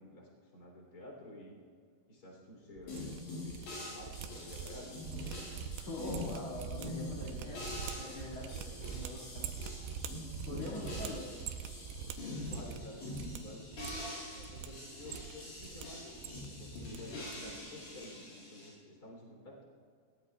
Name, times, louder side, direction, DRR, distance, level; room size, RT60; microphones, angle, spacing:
voice 1, 0.0-1.6 2.1-3.1 3.4-5.0 10.7-11.0 12.3-13.6 14.3-19.6, left 1 dB, 25° left, 0 dB, 2.9 m, -51 dB
sound 1, 2.8-3.7 3.9-12.9 13.1-13.4 13.7-14.7 15.0-15.8 16.1-17.0 17.3-17.6 17.8-18.1, right 8 dB, 90° right, 3.0 m, -44 dB
sound 2, 2.9-18.7, left 2 dB, 80° left, 7.2 m, -44 dB
voice 2, 5.8-9.5 10.4-11.2, left 2 dB, 45° left, -5 dB, 2.5 m, -44 dB
20.5 x 18.5 x 2.3 m, 2.1 s
omnidirectional pair, 5.2 m